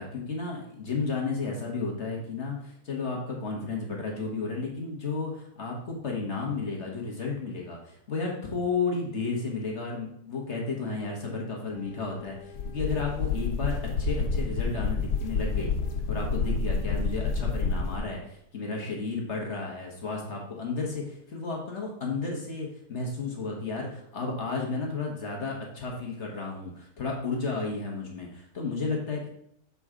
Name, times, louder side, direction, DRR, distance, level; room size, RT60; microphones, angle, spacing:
voice 1, 0.0-15.7 16.1-29.3, left 4 dB, 50° left, -1 dB, 1.4 m, -33 dB
sound 1, 11.7-18.0, left 4 dB, 85° left, 1.4 m, -29 dB
6.8 x 4.7 x 3.6 m, 0.70 s
omnidirectional pair, 1.7 m